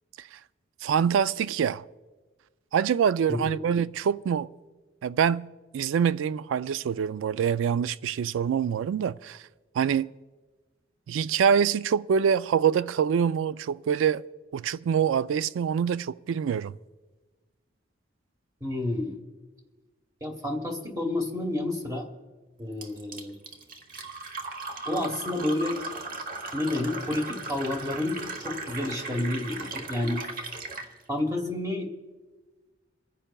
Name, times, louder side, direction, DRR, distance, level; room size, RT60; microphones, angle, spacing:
voice 1, 0.8-1.8 2.7-4.5 5.0-5.5 5.7-9.4 9.7-10.1 11.1-14.2 14.5-16.7, right 7 dB, 80° right, 0.3 m, -25 dB
voice 2, 3.3-3.6 18.6-19.2 20.2-22.1 22.6-23.4 24.9-25.8 26.5-30.2 31.1-31.9, left 1 dB, 20° right, 1.1 m, -30 dB
Fill (with liquid), 22.8-30.9, right 3 dB, 50° right, 1.0 m, -37 dB
28.5 x 10.0 x 2.3 m
head